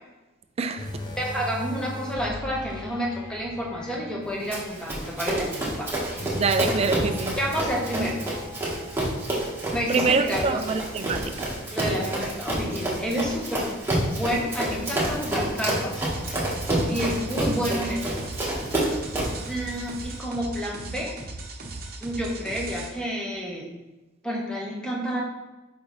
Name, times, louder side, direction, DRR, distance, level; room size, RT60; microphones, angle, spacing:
voice 1, 0.6-0.9 6.3-7.4 9.9-11.5, right 4 dB, 30° right, 9 dB, 0.4 m, -25 dB
sound 1, 0.8-12.2 12.6-12.8 13.4-13.5, left 1 dB, 25° left, 0.5 m, -39 dB
voice 2, 1.2-5.5 5.8-5.9 7.4-8.2 9.7-10.6 11.7-13.7 14.1-16.0 16.9-18.2 19.5-21.1 22.0-23.6 24.2-25.2, equal, 5° left, -3 dB, 1.1 m, -29 dB
Run, 4.5-19.4, right 1 dB, 10° right, 1.4 m, -28 dB
sound 2, 16.0-22.9, right 2 dB, 50° right, 0.8 m, -38 dB
6.4 x 5.1 x 3.2 m, 1.1 s
head